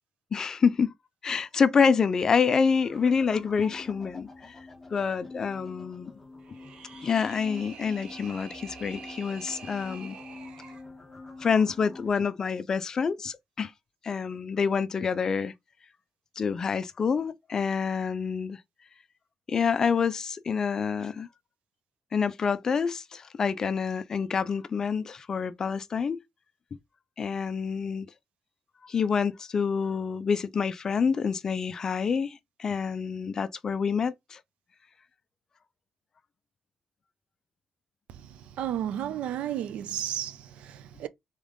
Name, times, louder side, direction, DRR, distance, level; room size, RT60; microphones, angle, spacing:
voice 1, 0.3-0.9 1.2-4.6 4.9-6.1 7.0-10.2 11.4-13.7 14.0-15.5 16.4-18.6 19.5-21.3 22.1-26.2 27.2-28.1 28.8-34.4, left 6 dB, 30° left, 0.3 m, -27 dB
sound 1, 2.8-12.1, left 3 dB, 10° left, 1.1 m, -46 dB
sound 2, 6.4-10.9, right 5 dB, 50° right, 0.9 m, -46 dB
voice 2, 38.6-41.1, right 11 dB, 80° right, 0.4 m, -32 dB
3.6 x 3.5 x 3.6 m
cardioid pair, 175°, 2 cm